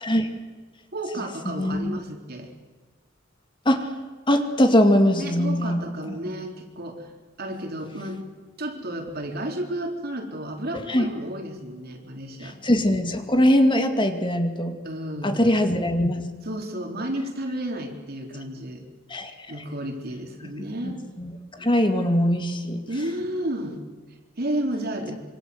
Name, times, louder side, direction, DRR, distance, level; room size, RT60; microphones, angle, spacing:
voice 1, 0.9-2.5 5.2-7.1 7.4-8.2 8.6-12.6 14.8-15.5 16.5-18.8 19.5-21.0 21.6-21.7 22.9-23.8 24.4-25.2, right 1 dB, 55° right, 3 dB, 3.8 m, -32 dB
voice 2, 1.5-2.0 3.7-3.9 4.3-5.8 10.7-11.1 12.4-14.8 15.2-16.3 19.1-19.6 20.8-21.3 21.6-22.9, equal, 25° left, 6 dB, 2.3 m, -22 dB
26.0 x 25.5 x 8.0 m, 1.3 s
head